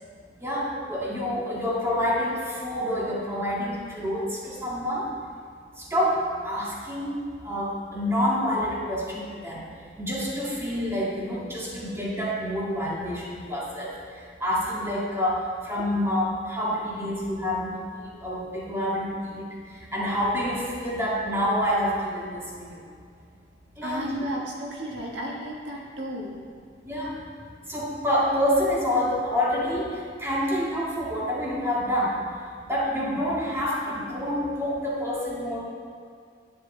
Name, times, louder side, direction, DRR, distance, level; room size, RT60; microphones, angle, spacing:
voice 1, 0.4-5.1 5.9-9.6 10.0-13.9 14.4-19.5 19.9-22.8 23.8-24.2 26.8-27.2 27.7-32.2 32.7-35.6, equal, 15° right, -6 dB, 2.0 m, -27 dB
voice 2, 23.8-26.4, equal, 90° right, -2 dB, 1.6 m, -33 dB
10.0 x 9.4 x 3.9 m, 2.2 s
head